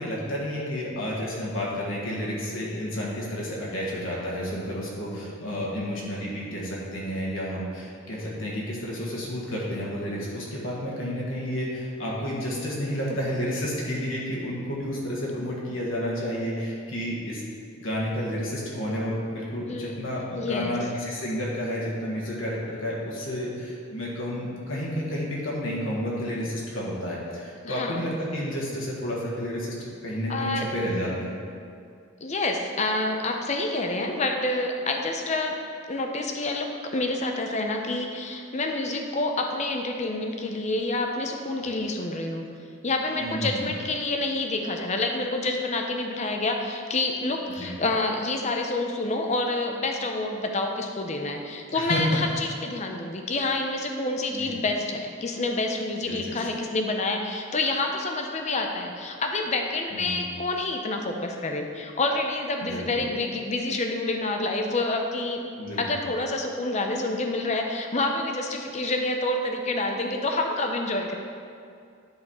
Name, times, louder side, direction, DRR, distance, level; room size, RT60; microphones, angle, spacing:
voice 1, 0.0-17.4 17.8-29.7 30.0-31.4 43.2-43.7 47.6-47.8 51.7-52.2 54.3-54.5 56.0-56.5 59.9-60.2 62.6-63.1 65.6-66.0, equal, 65° left, -5 dB, 1.6 m, -31 dB
voice 2, 20.4-20.7 27.6-28.0 30.3-30.7 32.2-35.6 35.9-42.5 42.8-65.4 65.8-71.2, left 2 dB, 30° left, 3 dB, 0.6 m, -28 dB
10.5 x 4.2 x 4.3 m, 2.3 s
head